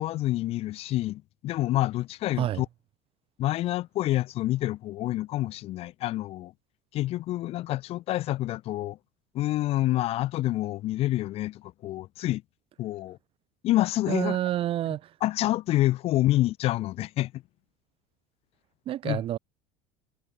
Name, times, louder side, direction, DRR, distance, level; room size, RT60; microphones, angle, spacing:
voice 1, 0.0-2.7 3.4-6.5 6.9-9.0 9.3-12.4 12.8-13.2 13.6-14.4 15.2-17.3 19.0-19.2, left 15 dB, 50° left, 0.9 m, -27 dB
voice 2, 14.1-15.1 18.8-19.4, right 12 dB, 45° right, 3.3 m, -28 dB
cardioid pair, 130°, 13 cm